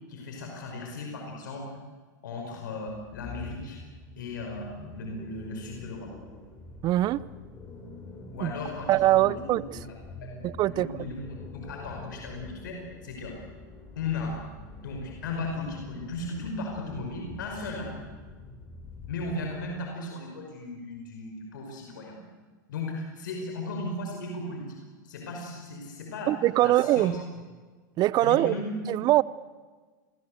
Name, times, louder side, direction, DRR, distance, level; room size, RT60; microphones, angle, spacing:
voice 1, 0.1-1.8 2.2-3.8 4.2-6.1 8.3-13.4 13.9-14.4 14.8-17.9 19.1-22.2 22.7-24.8 25.0-27.2 28.2-28.8, left 2 dB, 75° left, 1 dB, 5.5 m, -36 dB
sound 1, 2.9-19.7, left 2 dB, 25° left, 5.6 m, -46 dB
voice 2, 6.8-7.2 8.4-8.5 8.9-9.6 10.4-11.1 26.3-27.1 28.0-28.5 28.9-29.2, right 15 dB, 40° right, 20 dB, 0.8 m, -22 dB
27.0 x 21.5 x 8.0 m, 1.4 s
hypercardioid pair, 100°, 10 cm